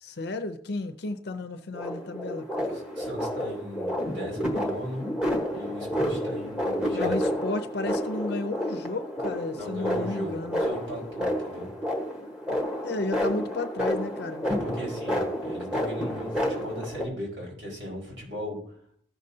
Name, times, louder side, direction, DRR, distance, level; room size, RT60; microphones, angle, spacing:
voice 1, 0.0-2.5 6.9-10.6 12.8-14.5, left 2 dB, 55° left, 9 dB, 0.6 m, -33 dB
sound 1, 1.7-17.0, equal, 5° right, 1.2 m, -30 dB
voice 2, 2.7-5.0 5.5-7.1 9.5-11.7 14.5-18.8, equal, 90° right, -3 dB, 4.6 m, -37 dB
15.0 x 6.5 x 2.7 m, 0.64 s
head